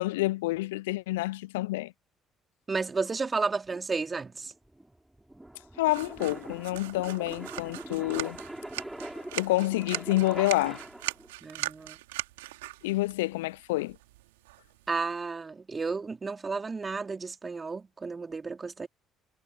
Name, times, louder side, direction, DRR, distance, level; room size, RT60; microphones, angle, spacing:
voice 1, 0.0-1.9 5.8-8.4 9.3-10.8 12.8-14.0, left 19 dB, 75° left, 0.4 m, -28 dB
voice 2, 2.7-4.5 11.4-12.0 14.9-18.9, right 4 dB, 30° right, 3.1 m, -32 dB
sound 1, 3.7-11.3, right 1 dB, 10° right, 6.5 m, -43 dB
sound 2, 5.8-14.9, right 19 dB, 75° right, 3.2 m, -40 dB
figure-of-eight pair, 50°, 0 cm